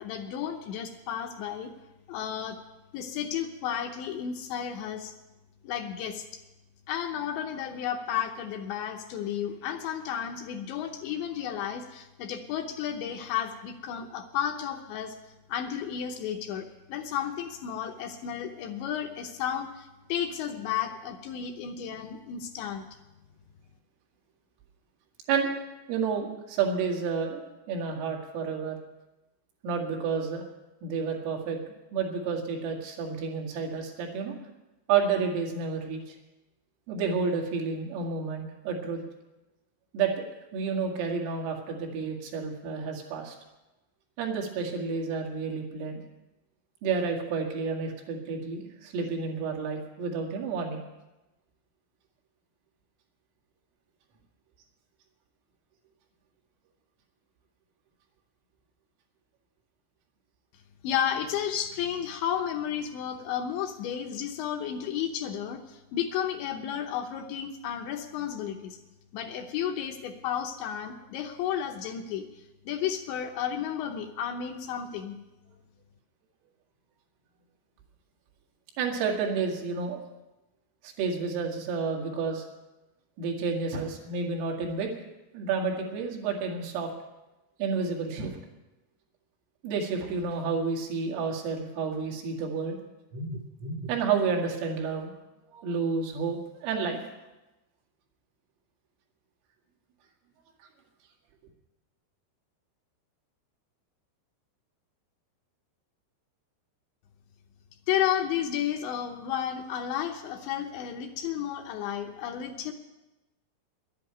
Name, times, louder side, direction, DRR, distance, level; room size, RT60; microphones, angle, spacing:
voice 1, 0.0-1.7 2.1-2.6 2.9-5.1 5.6-6.2 6.9-15.1 15.5-22.9 60.8-68.8 69.1-72.3 72.7-75.2 107.9-112.7, left 9 dB, 75° left, 4 dB, 2.9 m, -32 dB
voice 2, 25.9-28.8 29.6-30.4 30.8-31.6 31.9-34.3 34.9-36.0 36.9-39.0 39.9-40.2 40.5-43.4 44.2-46.0 46.8-50.8 78.8-80.0 80.8-82.4 83.2-84.9 85.3-86.9 87.6-88.4 89.6-92.8 93.1-95.1 95.5-97.0, right 5 dB, 85° right, 0 dB, 4.7 m, -30 dB
11.0 x 10.5 x 9.0 m, 1.0 s
omnidirectional pair, 5.7 m